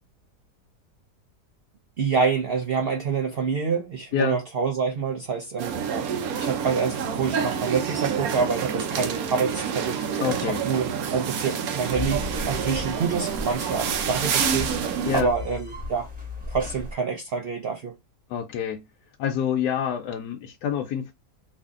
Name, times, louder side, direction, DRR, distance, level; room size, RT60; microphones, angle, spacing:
voice 1, 2.0-16.1 16.5-17.9, right 5 dB, 85° right, 0.5 m, -27 dB
sound 1, 5.6-15.2, right 7 dB, 70° right, 1.1 m, -28 dB
voice 2, 10.2-10.6 15.1-15.3 18.3-18.8 19.2-21.1, left 8 dB, 80° left, 1.1 m, -27 dB
sound 2, 11.9-16.9, left 2 dB, 5° right, 1.0 m, -36 dB
3.1 x 2.6 x 3.5 m
omnidirectional pair, 1.7 m